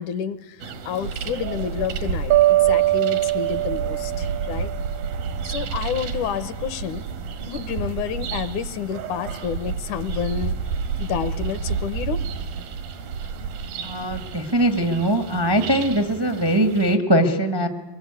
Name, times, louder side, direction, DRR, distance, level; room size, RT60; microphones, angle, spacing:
voice 1, 0.0-4.7 5.4-7.0 7.5-10.6 11.0-12.2, left 8 dB, 70° left, 15 dB, 2.2 m, -29 dB
sound 1, 0.6-17.0, right 5 dB, 85° right, 3.7 m, -31 dB
sound 2, 2.3-5.4, right 16 dB, 65° right, 1.6 m, -21 dB
voice 2, 13.8-17.7, right 1 dB, 30° right, 8 dB, 0.4 m, -21 dB
23.5 x 21.5 x 9.6 m, 1.2 s
omnidirectional pair, 3.9 m